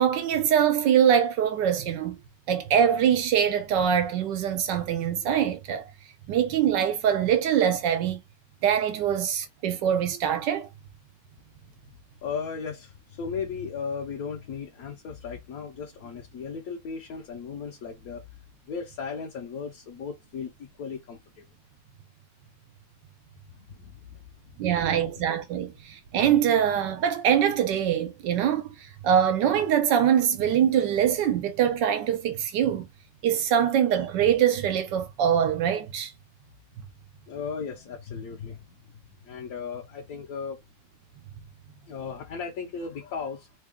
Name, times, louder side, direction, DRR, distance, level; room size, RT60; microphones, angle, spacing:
voice 1, 0.0-2.2 2.5-5.9 6.3-8.2 8.6-10.7 24.6-28.7 29.0-32.9 33.2-36.1 36.8-36.9, right 9 dB, 80° right, 1.4 m, -23 dB
voice 2, 12.2-18.2 18.7-21.4 23.5-24.2 37.3-40.6 41.8-43.5, left 5 dB, 65° left, 1.1 m, -36 dB
3.4 x 2.3 x 3.6 m
omnidirectional pair, 1.9 m